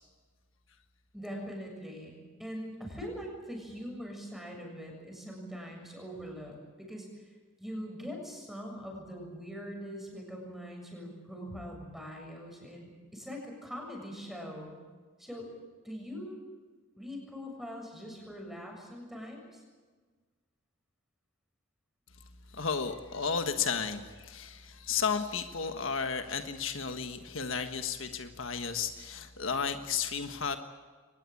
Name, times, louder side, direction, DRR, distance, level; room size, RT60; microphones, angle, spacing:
voice 1, 1.1-7.1 7.6-14.8 15.2-15.5 15.8-16.4 17.0-19.6, equal, ahead, 0 dB, 7.1 m, -42 dB
voice 2, 22.5-30.6, left 6 dB, 75° left, 7 dB, 1.5 m, -33 dB
24.0 x 19.5 x 8.7 m, 1.4 s
head